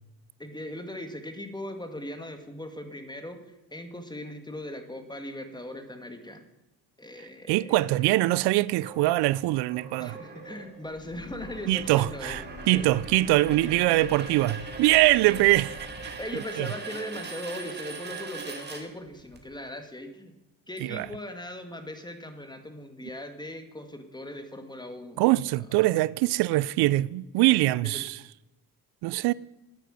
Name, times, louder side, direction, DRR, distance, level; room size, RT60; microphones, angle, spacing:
voice 1, 0.4-6.4 7.0-8.0 10.0-12.4 12.7-13.1 13.6-13.7 15.3-15.5 16.2-20.3 20.7-25.2 27.8-28.1, left 1 dB, 10° left, 2.1 m, -39 dB
voice 2, 7.5-10.2 11.7-15.7 16.0-16.2 16.6-16.7 20.8-21.1 25.2-28.2 29.0-29.3, right 18 dB, 85° right, 0.5 m, -23 dB
sound 1, 8.8-19.4, right 4 dB, 25° right, 2.6 m, -41 dB
Breathing / Train, 10.8-16.3, left 3 dB, 70° left, 2.1 m, -46 dB
10.5 x 9.7 x 7.9 m
cardioid pair, 90°, 38 cm